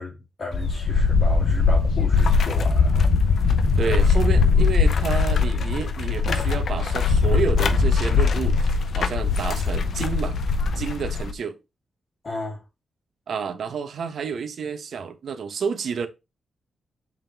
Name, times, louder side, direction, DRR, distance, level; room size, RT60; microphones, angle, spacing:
voice 1, 0.0-3.0 3.3-3.6 12.2-12.6, left 3 dB, 40° left, 3.0 m, -34 dB
sound 1, 0.5-11.3, left 4 dB, 65° left, 0.7 m, -20 dB
voice 2, 3.8-10.4 10.7-11.6 13.3-16.1, right 6 dB, 70° right, 0.9 m, -29 dB
7.3 x 3.7 x 3.5 m
wide cardioid pair, 115°, 0 cm